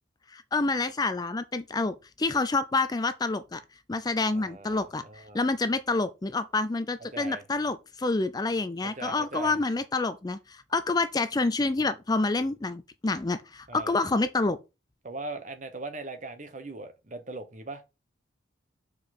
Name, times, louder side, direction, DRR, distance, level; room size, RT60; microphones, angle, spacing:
voice 1, 0.3-3.6 3.9-14.6, left 3 dB, 20° left, 0.4 m, -28 dB
voice 2, 4.3-5.4 7.1-7.4 8.8-9.6 13.7-14.0 15.0-17.8, right 2 dB, 40° right, 1.1 m, -40 dB
7.0 x 4.8 x 4.3 m
head